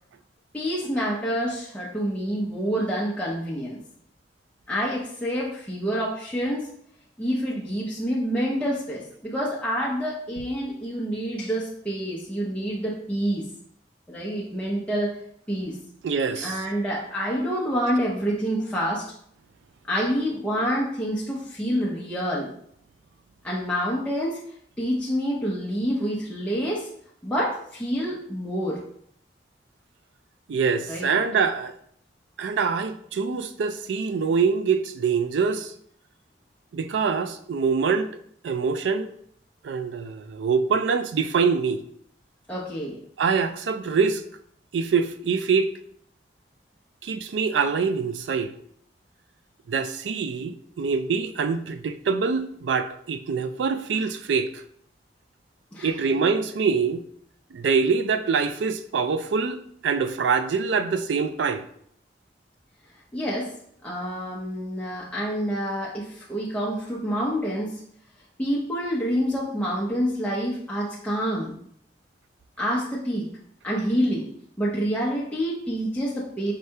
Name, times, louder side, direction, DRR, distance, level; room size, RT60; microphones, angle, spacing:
voice 1, 0.5-3.8 4.7-6.7 7.2-13.5 14.1-15.2 15.5-15.8 16.4-19.0 19.9-22.5 23.4-24.4 24.8-26.9 27.2-28.8 30.9-31.2 42.5-43.0 55.7-55.9 63.1-63.5 63.8-67.8 68.4-71.5 72.6-73.3 73.6-74.3 74.6-76.5, equal, 5° left, 0.6 m, -27 dB
voice 2, 16.0-16.6 30.5-31.7 32.4-35.7 36.7-38.1 38.4-39.1 39.6-41.8 43.2-44.2 44.7-45.7 47.0-48.5 49.7-54.6 55.8-57.0 57.5-61.7, right 5 dB, 85° right, 0.4 m, -24 dB
4.5 x 3.3 x 2.8 m
head